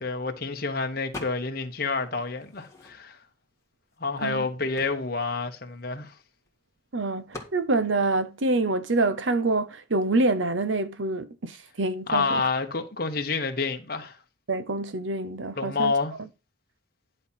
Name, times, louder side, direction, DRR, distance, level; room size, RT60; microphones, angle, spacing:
voice 1, 0.0-3.2 4.0-6.1 12.1-14.2 15.6-16.1, left 4 dB, 50° left, 1.2 m, -28 dB
sound 1, 1.1-1.7 2.1-3.3 3.9-4.0 4.2-6.5 7.3-7.6, left 2 dB, 15° left, 1.8 m, -43 dB
voice 2, 6.9-12.5 14.5-15.9, right 2 dB, 90° right, 0.9 m, -26 dB
10.5 x 4.4 x 5.8 m
head